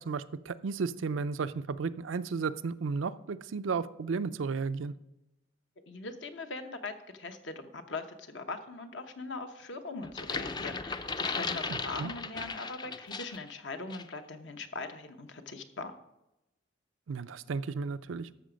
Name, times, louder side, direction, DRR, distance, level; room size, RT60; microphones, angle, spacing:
voice 1, 0.0-4.9 11.7-12.1 17.1-18.3, right 5 dB, 90° right, 13 dB, 0.5 m, -34 dB
voice 2, 5.9-15.9, left 3 dB, 70° left, 7 dB, 1.0 m, -41 dB
sound 1, 10.0-13.5 13.9-14.1, left 4 dB, 20° left, 0.4 m, -36 dB
12.5 x 6.9 x 5.1 m, 0.90 s
head